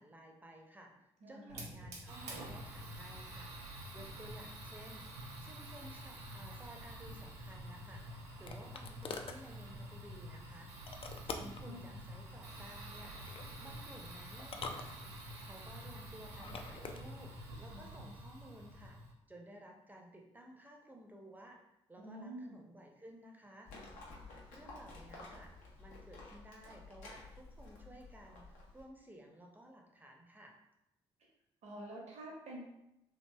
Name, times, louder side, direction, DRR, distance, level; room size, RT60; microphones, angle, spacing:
voice 1, 0.0-3.5 3.9-5.1 5.4-10.7 11.2-13.2 13.6-19.0 19.3-21.6 21.9-23.7 24.5-30.5, equal, 10° right, 1 dB, 0.7 m, -55 dB
voice 2, 1.2-1.7 11.3-12.0 17.7-18.1 22.0-22.6 31.6-32.7, right 1 dB, 55° right, -3 dB, 0.9 m, -49 dB
Fire, 1.5-19.1, right 1 dB, 90° right, 0.4 m, -48 dB
sound 1, 7.7-9.4 10.9-11.7 13.0-13.5 14.4-15.4 16.3-17.0, left 4 dB, 40° left, 0.4 m, -45 dB
Livestock farm animals working animals, 23.7-28.8, left 3 dB, 70° left, 0.7 m, -53 dB
2.8 x 2.7 x 2.3 m, 0.87 s
hypercardioid pair, 40°, 14 cm